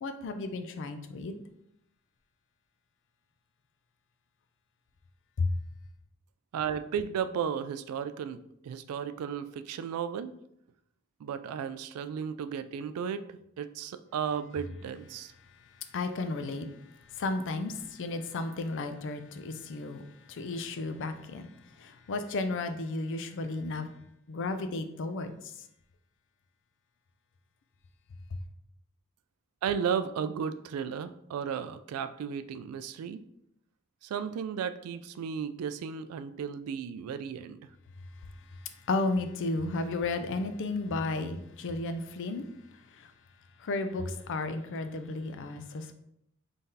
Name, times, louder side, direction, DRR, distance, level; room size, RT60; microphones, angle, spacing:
voice 1, 0.0-1.4 5.4-5.5 15.9-16.7 16.9-23.9 24.3-25.5 38.5-42.5 42.9-43.1 43.6-45.9, left 3 dB, 60° left, 0.4 m, -33 dB
voice 2, 6.5-10.3 11.2-15.3 29.6-33.2 34.0-37.6, right 7 dB, 90° right, 0.3 m, -34 dB
3.4 x 2.7 x 3.7 m
head